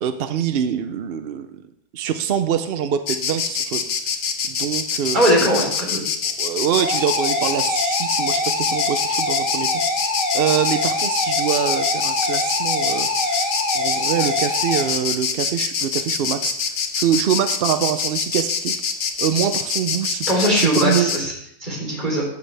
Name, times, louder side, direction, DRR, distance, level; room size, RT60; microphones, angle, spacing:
voice 1, 0.0-1.5 1.9-5.4 6.2-9.7 10.3-18.7 19.2-21.1, right 9 dB, 70° right, 10 dB, 0.5 m, -24 dB
Insect, 3.1-21.2, left 6 dB, 85° left, 1.5 m, -25 dB
voice 2, 5.1-6.0 20.3-21.3 21.6-22.3, equal, 30° right, -2 dB, 3.7 m, -20 dB
sound 1, 6.8-14.8, left 1 dB, 35° left, 3.7 m, -24 dB
13.5 x 8.2 x 3.3 m, 0.69 s
omnidirectional pair, 1.7 m